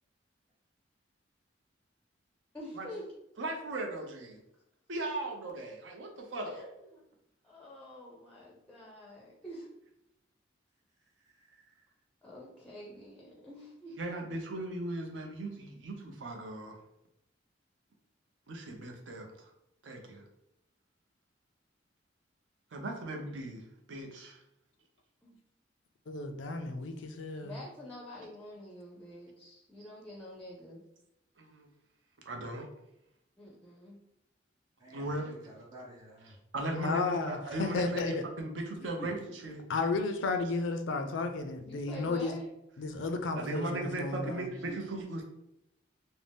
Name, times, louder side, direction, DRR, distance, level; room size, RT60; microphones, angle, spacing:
voice 1, 2.5-3.1 6.4-6.7 6.9-7.0 7.4-9.7 12.2-14.0 27.4-30.8 33.4-34.0 41.6-42.5, left 1 dB, 5° left, -4 dB, 0.4 m, -47 dB
voice 2, 3.4-4.4 4.9-6.6 14.0-16.8 18.5-19.3 19.8-20.2 22.7-23.6 23.9-24.4 31.4-31.7 32.3-32.7 34.9-35.3 36.2-39.6 43.3-45.2, right 2 dB, 85° right, 2 dB, 0.6 m, -37 dB
voice 3, 26.1-27.6 36.7-38.2 39.7-42.3 42.8-44.5, left 3 dB, 85° left, 7 dB, 0.4 m, -33 dB
voice 4, 34.8-36.3 39.0-39.1 44.2-44.3 44.6-44.8, equal, 20° right, -6 dB, 0.8 m, -48 dB
2.6 x 2.0 x 3.3 m, 0.83 s
head